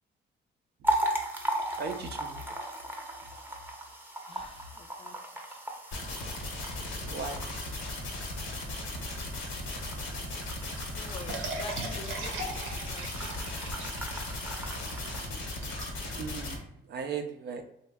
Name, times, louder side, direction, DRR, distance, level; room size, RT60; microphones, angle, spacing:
sound 1, 0.8-15.3, equal, 10° right, 0.7 m, -37 dB
voice 1, 1.7-2.4 6.8-7.5 14.8-15.7 16.1-17.6, right 5 dB, 55° right, 5 dB, 0.4 m, -39 dB
voice 2, 4.3-5.2 5.5-5.6 11.0-13.3 13.6-13.7, left 4 dB, 30° left, 7 dB, 0.4 m, -47 dB
sound 2, 5.9-16.6, left 2 dB, 80° left, 1.0 m, -37 dB
sound 3, 11.3-16.6, right 2 dB, 90° right, 0.7 m, -40 dB
3.0 x 2.1 x 3.4 m, 0.79 s
cardioid pair, 90°, 20 cm